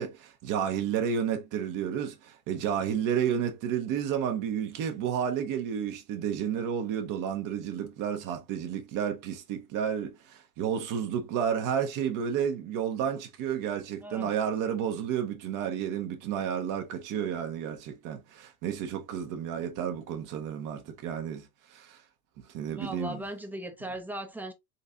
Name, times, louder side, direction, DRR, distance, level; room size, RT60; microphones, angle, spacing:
voice 1, 0.0-22.0 22.5-23.2, right 8 dB, 45° right, 1.1 m, -31 dB
voice 2, 22.7-24.5, right 1 dB, 5° right, 0.8 m, -38 dB
4.0 x 3.2 x 2.6 m
hypercardioid pair, 85°, 42 cm